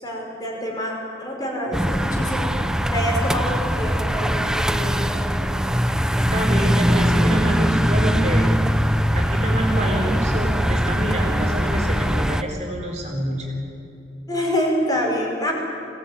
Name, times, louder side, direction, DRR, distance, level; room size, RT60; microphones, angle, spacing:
voice 1, 0.0-0.9 1.2-2.5 2.9-5.3 14.3-15.5, equal, 20° left, -1 dB, 5.4 m, -26 dB
sound 1, 1.7-12.4, equal, 5° right, 0.8 m, -21 dB
voice 2, 6.2-8.5 9.1-13.6, right 1 dB, 40° right, 0 dB, 4.1 m, -27 dB
24.5 x 17.5 x 9.7 m, 2.8 s
head